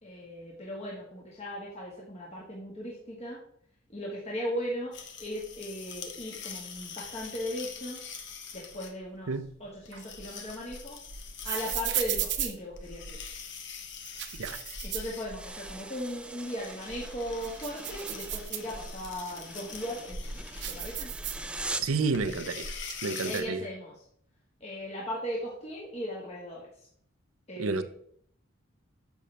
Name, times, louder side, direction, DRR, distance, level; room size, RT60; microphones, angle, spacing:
voice 1, 0.0-3.4 3.9-8.0 8.5-9.3 9.6-11.0 11.4-13.2 14.8-20.5 20.7-21.1 23.2-24.0 24.6-26.7 27.5-27.8, equal, 30° left, 1.6 m, -37 dB
sound 1, 4.9-23.4, left 7 dB, 55° left, 1.2 m, -45 dB
sound 2, 9.9-13.4 13.9-15.8 16.1-16.2 16.7-19.1 19.7-21.9 22.1-22.9, right 9 dB, 55° right, 0.9 m, -36 dB
sound 3, 15.3-22.0, right 2 dB, 5° right, 0.4 m, -42 dB
voice 2, 21.8-22.7 23.0-23.6 27.6-27.8, right 4 dB, 80° right, 0.7 m, -30 dB
10.5 x 7.1 x 3.4 m
head